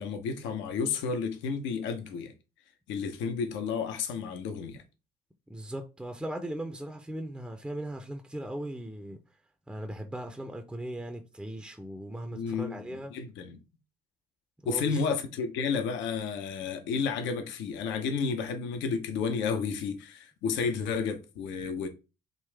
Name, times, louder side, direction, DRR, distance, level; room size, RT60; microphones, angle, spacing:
voice 1, 0.0-2.3 2.9-4.8 12.3-13.6 14.7-21.9, left 5 dB, 65° left, 0.7 m, -31 dB
voice 2, 5.5-9.2 9.7-13.1 14.6-15.0, right 1 dB, 5° right, 0.6 m, -38 dB
3.8 x 2.5 x 3.3 m
hypercardioid pair, 50°, 21 cm